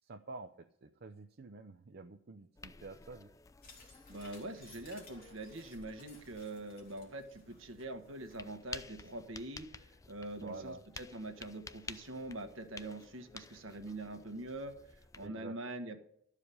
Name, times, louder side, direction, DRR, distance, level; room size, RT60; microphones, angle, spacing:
voice 1, 0.0-3.3 10.4-10.8 15.2-15.6, right 3 dB, 50° right, 5 dB, 0.6 m, -49 dB
sound 1, 2.6-15.3, left 4 dB, 15° left, 0.4 m, -53 dB
sound 2, 3.6-8.8, left 3 dB, 50° left, 3.0 m, -59 dB
voice 2, 4.1-9.7 10.1-14.7 15.2-16.0, right 2 dB, 70° right, 6 dB, 1.4 m, -44 dB
12.5 x 4.9 x 8.5 m, 0.72 s
head